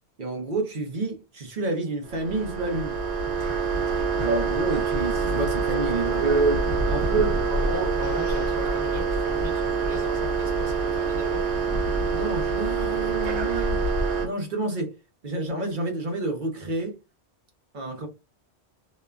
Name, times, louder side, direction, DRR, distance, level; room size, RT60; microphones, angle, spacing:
voice 1, 0.2-2.9 4.2-7.4 12.1-13.8 14.2-14.9 15.2-16.9 17.7-18.1, right 3 dB, 50° right, 0.8 m, -28 dB
sound 1, 2.0-14.3, right 4 dB, 80° right, 1.0 m, -26 dB
voice 2, 7.4-11.5, right 2 dB, 30° right, 1.1 m, -36 dB
Fart, 8.0-8.6 9.9-10.1, left 3 dB, 65° left, 1.0 m, -42 dB
2.9 x 2.1 x 2.3 m
omnidirectional pair, 1.1 m